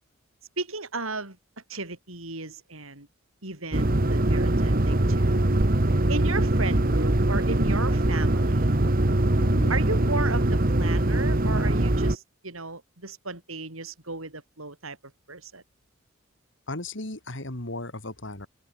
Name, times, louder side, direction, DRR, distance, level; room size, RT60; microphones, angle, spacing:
voice 1, 0.6-1.4 1.7-3.1 3.4-5.5 6.1-8.7 9.7-15.0 15.3-15.6, right 3 dB, 80° right, 5.8 m, -35 dB
sound 1, 3.7-12.2, right 1 dB, 45° right, 1.5 m, -22 dB
voice 2, 9.4-9.8 16.7-18.5, left 2 dB, 60° left, 3.6 m, -35 dB
open air
head